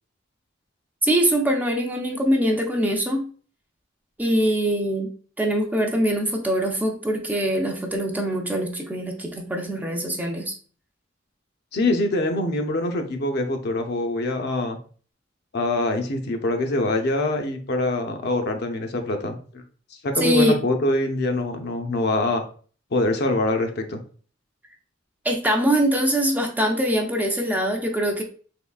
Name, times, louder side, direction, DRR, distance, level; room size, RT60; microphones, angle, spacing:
voice 1, 1.0-3.3 4.2-5.1 5.4-10.5 20.2-20.6 25.2-28.2, right 1 dB, 10° right, 2 dB, 0.4 m, -23 dB
voice 2, 11.7-14.8 15.5-19.6 20.0-22.5 22.9-24.0, left 2 dB, 55° left, 4 dB, 0.6 m, -24 dB
3.6 x 3.2 x 2.3 m, 0.41 s
head